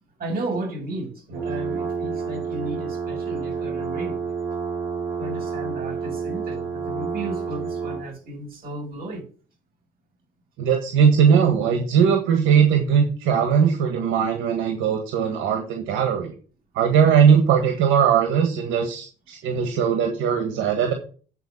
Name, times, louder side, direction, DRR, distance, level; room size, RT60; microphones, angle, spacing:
voice 1, 0.2-4.2 5.2-9.2, right 2 dB, 50° right, 6.5 m, -33 dB
sound 1, 1.3-8.1, right 5 dB, 75° right, 6.1 m, -29 dB
voice 2, 10.6-16.3 16.7-20.9, right 7 dB, 90° right, 1.7 m, -19 dB
9.3 x 4.8 x 7.2 m
cardioid pair, 90°, 19 cm